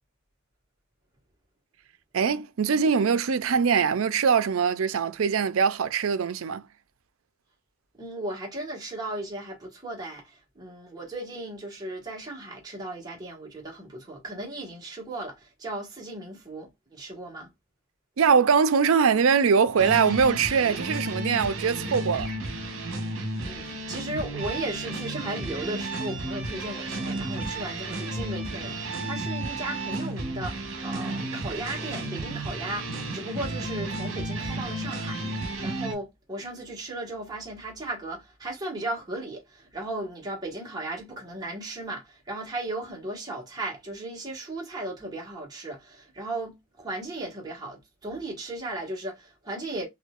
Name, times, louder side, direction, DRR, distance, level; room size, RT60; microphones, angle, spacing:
voice 1, 2.1-6.7 18.2-22.3, right 6 dB, 85° right, 0.5 m, -22 dB
voice 2, 8.0-17.5 23.1-49.9, right 2 dB, 20° right, 1.6 m, -36 dB
sound 1, 19.8-35.9, right 2 dB, 70° right, 1.1 m, -33 dB
4.3 x 2.7 x 2.4 m
head